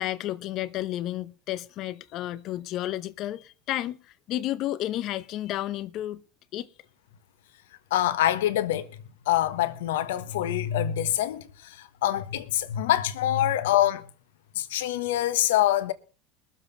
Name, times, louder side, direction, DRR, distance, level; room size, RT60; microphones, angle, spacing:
voice 1, 0.0-6.2 6.5-6.7, left 14 dB, 55° left, 0.8 m, -32 dB
voice 2, 7.9-8.9 9.3-14.1 14.5-15.9, left 12 dB, 85° left, 1.2 m, -25 dB
21.5 x 7.4 x 4.1 m
supercardioid pair, 105°, 0 cm